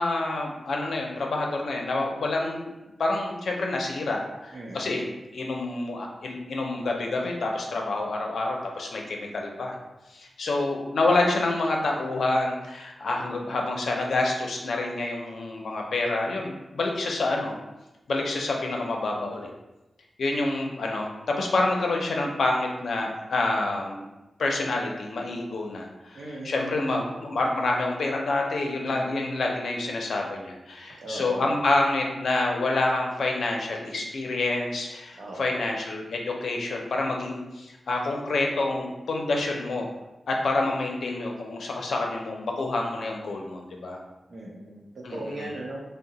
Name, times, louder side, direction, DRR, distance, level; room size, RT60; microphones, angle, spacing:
voice 1, 0.0-2.7 3.0-5.1 5.3-9.7 10.1-17.5 18.1-19.5 20.2-24.1 24.4-39.9 40.3-44.0 45.0-45.5, left 2 dB, 80° left, 1 dB, 0.5 m, -27 dB
voice 2, 4.5-5.0 26.1-27.0 31.0-31.6 35.2-35.7 44.3-45.8, right 1 dB, 55° right, -2 dB, 0.6 m, -38 dB
2.8 x 2.0 x 3.9 m, 1.0 s
wide cardioid pair, 175°, 0 cm